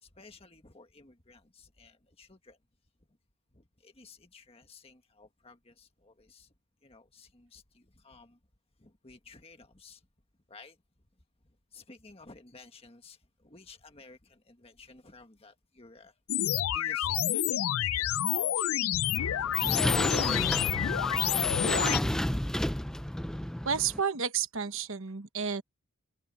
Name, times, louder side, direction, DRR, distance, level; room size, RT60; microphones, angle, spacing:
voice 1, 0.0-2.6 3.1-3.2 3.5-6.5 6.8-8.4 8.8-10.1 10.5-11.0 11.4-19.6, left 3 dB, 25° left, 1.6 m, -55 dB
sound 1, 16.3-22.0, left 11 dB, 70° left, 0.4 m, -28 dB
sound 2, 19.1-24.0, equal, 5° left, 0.3 m, -31 dB
voice 2, 21.7-22.2 23.6-25.6, right 6 dB, 60° right, 1.2 m, -32 dB
head